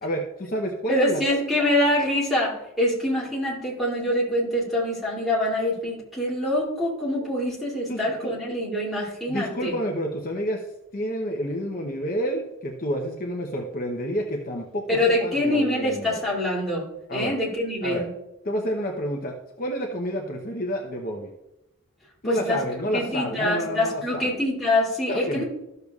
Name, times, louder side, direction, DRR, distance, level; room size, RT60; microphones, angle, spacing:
voice 1, 0.0-1.2 7.9-8.4 9.3-10.6 10.9-16.2 17.1-17.3 17.8-18.0 18.4-21.3 22.2-24.4 25.1-25.4, equal, 40° left, 0 dB, 0.8 m, -29 dB
voice 2, 0.9-9.8 14.9-18.1 22.2-22.6 22.9-25.4, left 1 dB, ahead, -6 dB, 2.7 m, -25 dB
13.5 x 6.7 x 2.4 m, 0.92 s
head